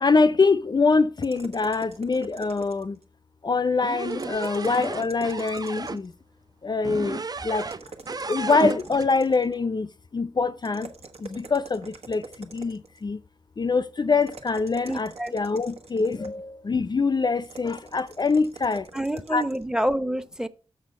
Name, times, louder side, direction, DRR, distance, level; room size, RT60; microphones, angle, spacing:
voice 1, 0.0-3.0 3.4-6.1 6.6-7.7 8.3-10.9 11.2-13.2 13.6-18.9 19.3-19.4, left 4 dB, 40° left, 0.5 m, -24 dB
sound 1, 1.2-3.0 4.1-6.1 7.6-9.6 10.6-13.0 14.2-16.4 17.4-19.6, right 4 dB, 70° right, 1.2 m, -44 dB
sound 2, 3.8-6.0 6.8-9.1, right 4 dB, 35° right, 0.5 m, -33 dB
voice 2, 14.9-15.3 18.9-20.5, right 1 dB, 5° right, 0.7 m, -27 dB
6.6 x 6.2 x 5.4 m
cardioid pair, 50°, 11 cm